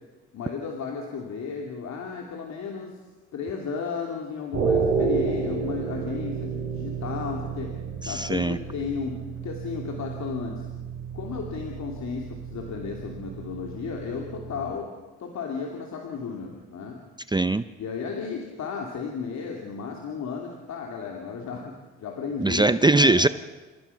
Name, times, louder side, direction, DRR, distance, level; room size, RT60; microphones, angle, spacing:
voice 1, 0.3-3.0 3.3-7.7 8.0-10.7 11.1-14.9 15.2-17.0 17.8-23.3, left 5 dB, 65° left, 0 dB, 3.0 m, -34 dB
sound 1, 4.5-14.7, right 5 dB, 55° right, 6.3 m, -31 dB
voice 2, 8.0-8.6 17.3-17.6 22.4-23.3, right 2 dB, 15° right, 13 dB, 0.6 m, -20 dB
30.0 x 15.0 x 5.9 m, 1.2 s
cardioid pair, 90°, 30 cm